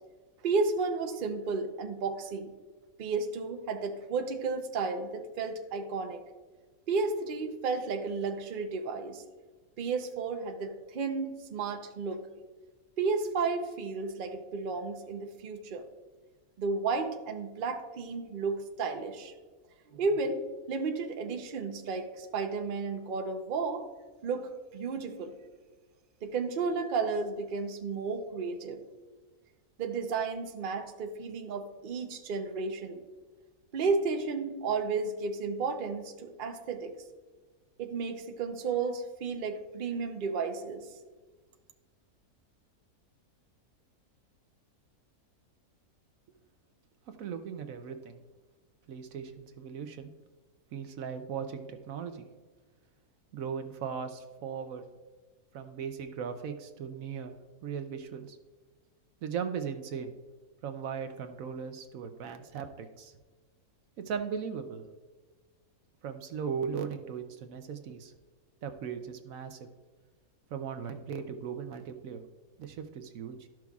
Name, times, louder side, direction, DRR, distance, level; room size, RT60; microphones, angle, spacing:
voice 1, 0.4-2.5 3.0-6.2 6.9-9.2 9.8-12.3 13.0-15.8 16.6-19.3 19.9-23.9 24.2-25.3 26.2-28.8 29.8-33.0 33.7-36.9 37.8-40.9, right 4 dB, 50° right, 5 dB, 0.7 m, -33 dB
voice 2, 47.1-48.2 48.9-50.1 50.7-52.3 53.3-54.9 55.5-57.4 57.6-58.4 59.2-60.1 60.6-63.1 64.0-64.8 66.0-68.1 68.6-69.7 70.5-72.2 72.6-73.5, right 7 dB, 70° right, 7 dB, 0.9 m, -38 dB
13.0 x 6.1 x 2.3 m, 1.3 s
omnidirectional pair, 1.6 m